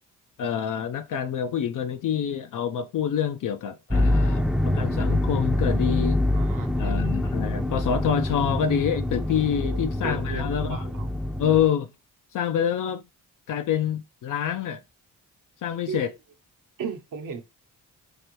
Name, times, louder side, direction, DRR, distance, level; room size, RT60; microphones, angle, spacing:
voice 1, 0.4-6.2 6.8-10.8 11.4-11.9 12.3-13.0 13.5-14.8 15.6-16.1, left 9 dB, 65° left, 0.5 m, -27 dB
sound 1, 3.9-11.6, left 1 dB, ahead, 0.5 m, -25 dB
voice 2, 6.3-6.9 9.6-11.1 15.9-16.0 16.8-17.4, right 5 dB, 65° right, 0.9 m, -36 dB
4.8 x 2.6 x 2.9 m
cardioid pair, 90°, 34 cm